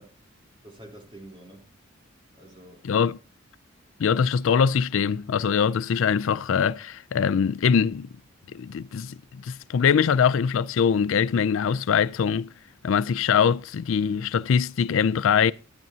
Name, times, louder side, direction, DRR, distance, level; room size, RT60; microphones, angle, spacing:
voice 1, 0.0-1.7 2.3-2.9, right 1 dB, 25° right, 3.4 m, -48 dB
voice 2, 2.9-3.2 4.0-8.1 8.5-12.5 12.8-15.5, left 7 dB, 70° left, 0.4 m, -23 dB
11.5 x 10.5 x 2.8 m
head